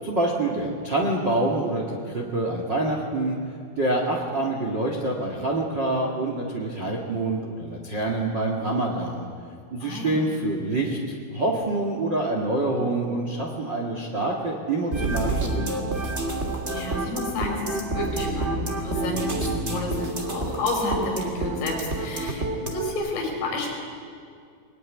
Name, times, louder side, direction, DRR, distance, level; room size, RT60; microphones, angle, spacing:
voice 1, 0.0-3.4 3.8-9.3 9.7-15.8, right 2 dB, 55° right, 1 dB, 1.2 m, -26 dB
voice 2, 9.8-10.2 16.7-22.4 22.7-23.7, left 2 dB, 75° left, 0 dB, 7.2 m, -30 dB
sound 1, 14.9-22.9, right 2 dB, 35° right, 1.1 m, -28 dB
22.5 x 20.5 x 9.8 m, 2.3 s
omnidirectional pair, 5.8 m